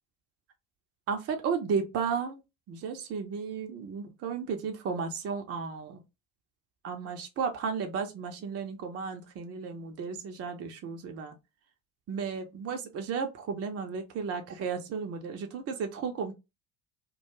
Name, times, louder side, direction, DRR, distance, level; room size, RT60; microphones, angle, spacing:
voice 1, 1.1-2.4 2.7-6.0 6.8-11.3 12.1-16.3, right 6 dB, 35° right, 0.6 m, -34 dB
2.3 x 2.3 x 3.0 m
figure-of-eight pair, 55°, 43 cm